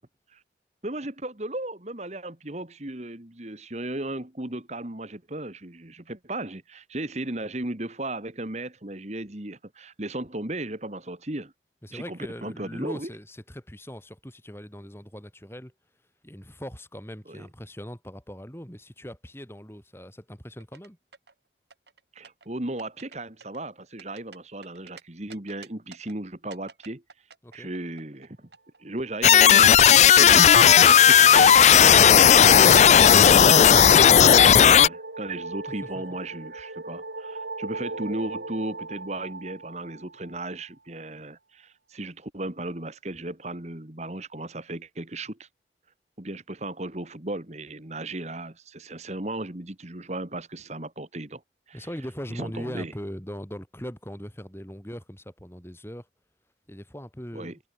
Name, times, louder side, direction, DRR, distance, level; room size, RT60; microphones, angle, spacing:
voice 1, 0.8-11.5 11.9-13.1 17.3-17.5 22.1-27.0 27.5-28.5 28.8-45.5 46.2-51.4 51.7-51.9 52.3-52.9 57.3-57.6, right 1 dB, 40° right, 1.9 m, -36 dB
voice 2, 11.8-15.7 16.2-21.0 27.4-27.7 35.9-36.0 51.7-56.1 56.7-57.6, equal, 15° left, 4.7 m, -40 dB
sound 1, 20.6-21.3 21.7-22.5 22.8-23.2 23.4-25.0 25.3-26.1 26.5-28.3 28.5-29.5, right 6 dB, 70° right, 3.7 m, -49 dB
sound 2, 29.2-34.9, left 8 dB, 40° left, 0.3 m, -14 dB
sound 3, 29.4-40.6, right 3 dB, 85° right, 7.4 m, -40 dB
head